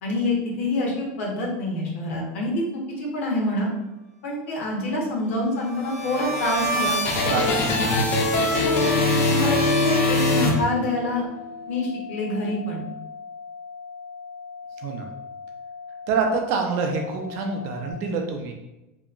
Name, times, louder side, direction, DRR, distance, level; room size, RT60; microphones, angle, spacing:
voice 1, 0.0-2.6 3.0-3.7 4.2-7.0 8.5-11.2 11.7-12.8, left 2 dB, 80° left, -2 dB, 0.9 m, -26 dB
sound 1, 5.6-11.2, left 2 dB, 35° left, 0.4 m, -22 dB
voice 2, 7.2-8.2 14.8-15.0 16.1-18.5, right 4 dB, 40° right, 3 dB, 0.4 m, -26 dB
sound 2, 11.3-17.9, left 5 dB, 75° right, 0.7 m, -40 dB
2.8 x 2.2 x 2.4 m, 0.98 s
supercardioid pair, 165°, 7 cm